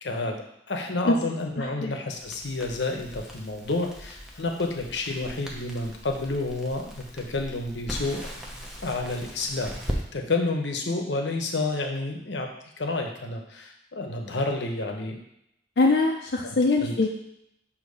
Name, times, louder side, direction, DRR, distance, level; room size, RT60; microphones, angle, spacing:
voice 1, 0.0-8.2 8.8-9.8 10.1-12.5 12.8-15.2 16.4-17.0, left 2 dB, 80° left, 3 dB, 0.9 m, -30 dB
voice 2, 1.6-1.9 15.8-17.1, left 3 dB, 65° left, -2 dB, 0.6 m, -23 dB
Crackle, 2.1-10.0, equal, 5° right, 0.8 m, -39 dB
6.5 x 2.9 x 5.4 m, 0.78 s
head